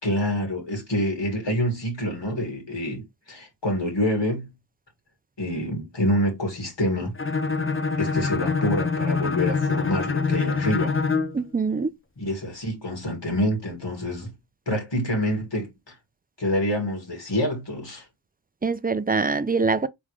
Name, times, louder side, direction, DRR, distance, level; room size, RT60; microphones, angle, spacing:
voice 1, 0.0-3.0 3.3-4.5 5.4-7.1 8.0-10.9 12.2-14.3 14.7-15.9 16.4-18.1, equal, 65° left, 2.1 m, -26 dB
Bowed string instrument, 7.2-11.4, left 4 dB, 25° left, 0.6 m, -25 dB
voice 2, 11.3-11.9 18.6-19.9, right 4 dB, 20° right, 0.3 m, -24 dB
3.6 x 3.5 x 3.1 m
wide cardioid pair, 45°, 47 cm